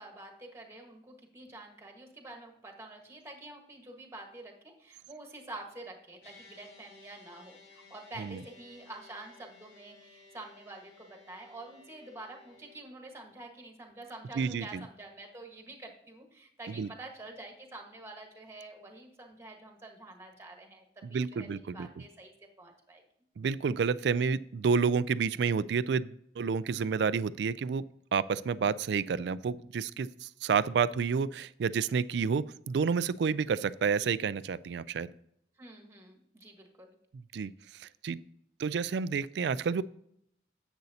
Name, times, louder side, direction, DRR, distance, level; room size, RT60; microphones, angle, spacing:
voice 1, 0.0-23.0 35.6-37.0, right 2 dB, 15° right, 2 dB, 1.4 m, -48 dB
sound 1, 6.2-12.8, left 4 dB, 60° left, 2.6 m, -57 dB
voice 2, 14.4-14.8 16.8-16.9 21.0-21.9 23.4-27.8 28.1-35.1 37.3-37.5 37.8-38.2 38.6-39.8, right 5 dB, 65° right, 18 dB, 0.3 m, -30 dB
10.5 x 8.0 x 2.8 m, 0.73 s
head